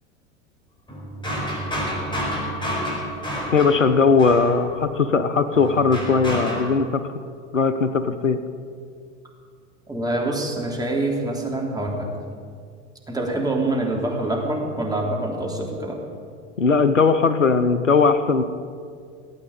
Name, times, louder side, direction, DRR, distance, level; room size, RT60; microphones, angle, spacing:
sound 1, 0.9-5.0 5.5-6.7, equal, 15° left, 4.8 m, -29 dB
voice 1, 3.5-7.1 7.5-8.4 16.6-18.4, left 4 dB, 90° left, 11 dB, 0.8 m, -19 dB
voice 2, 9.9-12.1 13.1-16.0, right 2 dB, 10° right, -2 dB, 3.3 m, -25 dB
17.5 x 8.7 x 8.3 m, 2.2 s
figure-of-eight pair, 85°, 37 cm